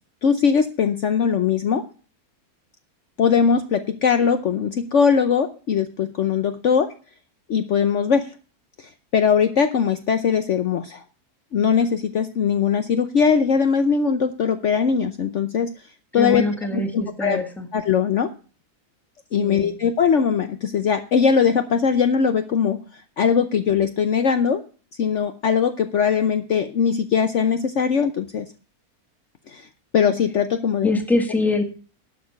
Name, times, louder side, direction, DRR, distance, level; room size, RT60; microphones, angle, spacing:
voice 1, 0.2-1.8 3.2-6.9 7.5-8.3 8.8-11.0 11.5-15.7 16.1-16.4 16.7-17.4 17.7-18.3 19.3-24.6 25.0-28.5 29.5-29.7 29.9-30.9, left 6 dB, 55° left, 8 dB, 1.0 m, -20 dB
voice 2, 16.2-17.7 19.4-19.8 30.8-31.6, left 2 dB, ahead, 3 dB, 1.6 m, -24 dB
11.5 x 6.5 x 6.9 m, 0.38 s
omnidirectional pair, 1.6 m